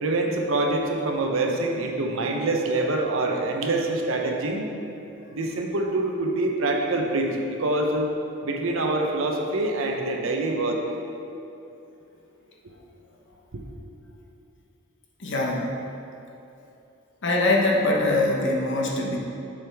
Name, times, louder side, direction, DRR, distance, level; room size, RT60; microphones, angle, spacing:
voice 1, 0.0-4.7 5.3-8.1 8.4-10.8 13.5-13.6, right 2 dB, 70° right, 2 dB, 0.8 m, -25 dB
voice 2, 15.2-15.7 17.2-19.2, left 2 dB, 60° left, -1 dB, 1.1 m, -23 dB
7.8 x 6.3 x 3.5 m, 2.8 s
head